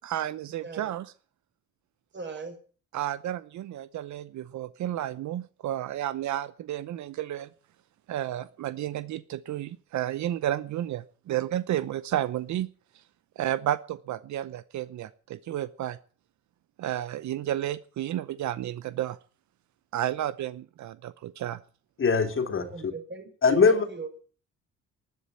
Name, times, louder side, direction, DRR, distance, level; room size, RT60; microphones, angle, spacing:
voice 1, 0.0-1.1 2.9-7.5 8.1-12.7 13.4-16.0 16.8-19.2 19.9-21.6, right 12 dB, 70° right, 0.8 m, -32 dB
voice 2, 2.1-2.6 22.7-23.3 23.6-24.2, right 4 dB, 40° right, 5.8 m, -39 dB
voice 3, 22.0-22.7 23.4-23.8, left 5 dB, 45° left, 2.7 m, -21 dB
12.0 x 10.5 x 9.7 m
cardioid pair, 90°, 30 cm